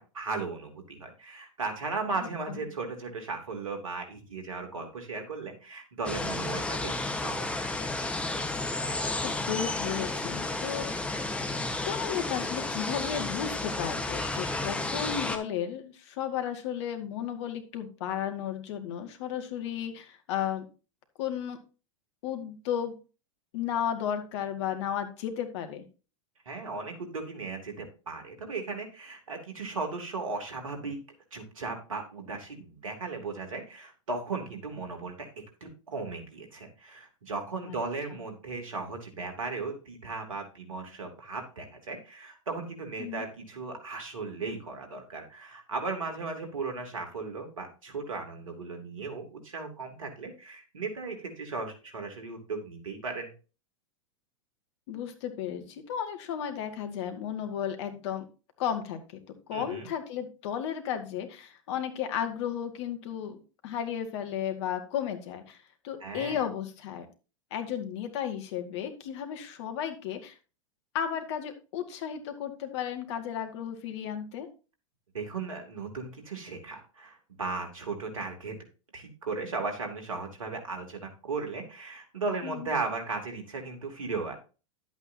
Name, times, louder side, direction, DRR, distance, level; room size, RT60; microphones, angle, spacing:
voice 1, 0.0-7.9 26.5-31.0 31.3-35.3 35.6-53.3 59.5-59.9 66.0-66.4 75.1-78.6 78.9-84.4, right 4 dB, 80° right, 3 dB, 3.0 m, -36 dB
sound 1, 6.0-15.4, left 2 dB, 5° left, 1.4 m, -32 dB
voice 2, 9.2-11.1 11.8-20.7 21.2-21.6 22.2-22.9 23.5-25.8 37.7-37.8 43.0-43.3 54.9-58.2 58.6-59.2 59.5-65.6 65.8-67.1 67.5-70.4 70.9-74.5 82.4-82.7, left 9 dB, 60° left, 6 dB, 2.1 m, -34 dB
12.0 x 8.2 x 2.9 m, 0.34 s
hypercardioid pair, 100°, 17 cm